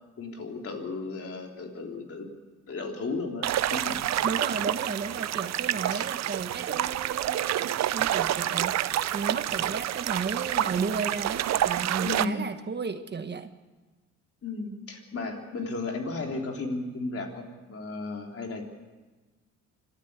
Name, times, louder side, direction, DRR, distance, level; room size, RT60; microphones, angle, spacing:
voice 1, 0.2-2.3 2.7-4.0 5.9-6.1 12.0-12.5 14.4-18.6, left 3 dB, 50° left, 2 dB, 3.7 m, -34 dB
sound 1, 3.4-12.2, right 12 dB, 60° right, 0.7 m, -28 dB
voice 2, 4.2-13.5, right 5 dB, 35° right, 8 dB, 1.3 m, -33 dB
25.0 x 13.0 x 8.3 m, 1.2 s
cardioid pair, 90°, 30 cm